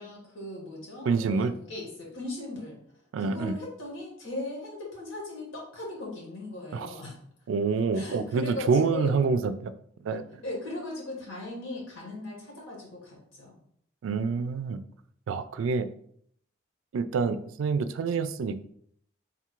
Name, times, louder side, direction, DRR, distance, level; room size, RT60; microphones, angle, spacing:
voice 1, 0.0-2.8 3.2-7.2 7.9-9.2 10.4-13.6, left 2 dB, 85° left, -2 dB, 1.6 m, -38 dB
voice 2, 1.1-1.5 3.1-3.5 6.7-6.9 7.5-9.7 10.0-10.2 14.0-14.8 15.3-15.9 16.9-18.6, right 5 dB, 85° right, 13 dB, 0.3 m, -27 dB
3.6 x 2.4 x 4.5 m, 0.67 s
head